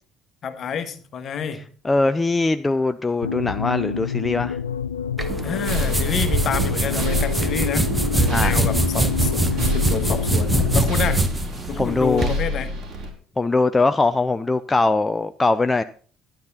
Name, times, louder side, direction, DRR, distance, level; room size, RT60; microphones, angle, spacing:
voice 1, 0.4-1.6 5.4-11.2 11.7-12.7, left 7 dB, 50° left, 1.5 m, -29 dB
voice 2, 1.8-4.6 8.3-8.5 11.7-12.3 13.4-15.8, left 3 dB, 20° left, 0.5 m, -21 dB
sound 1, 3.2-11.2, left 6 dB, 85° left, 0.5 m, -28 dB
sound 2, 5.2-12.4, right 1 dB, 15° right, 1.5 m, -23 dB
sound 3, 5.3-13.1, equal, 55° right, 4.0 m, -29 dB
11.5 x 10.5 x 4.1 m
figure-of-eight pair, 55°, 0 cm